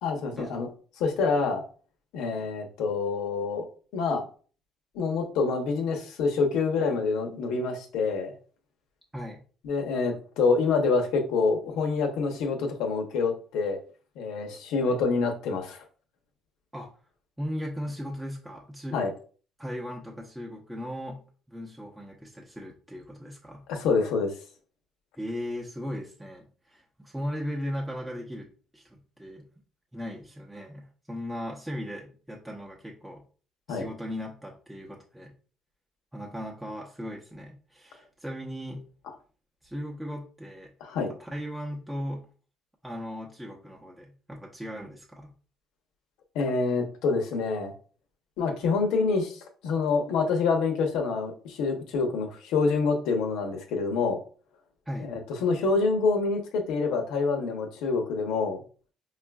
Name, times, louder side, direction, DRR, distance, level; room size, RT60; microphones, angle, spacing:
voice 1, 0.0-0.7 1.0-1.6 2.1-4.2 4.9-8.3 9.6-13.8 14.2-15.8 18.9-19.1 23.7-24.3 33.7-33.9 40.8-41.1 46.3-47.7 48.4-54.2 55.1-58.6, left 4 dB, 85° left, 3 dB, 0.8 m, -26 dB
voice 2, 17.4-19.0 19.6-21.2 21.5-23.6 25.1-28.5 28.7-29.4 29.9-33.2 33.7-35.3 36.1-38.8 39.6-40.7 41.2-42.2 42.8-45.3 54.9-55.1, equal, 5° right, -3 dB, 0.7 m, -37 dB
5.1 x 2.4 x 2.3 m, 0.40 s
cardioid pair, 110°, 0 cm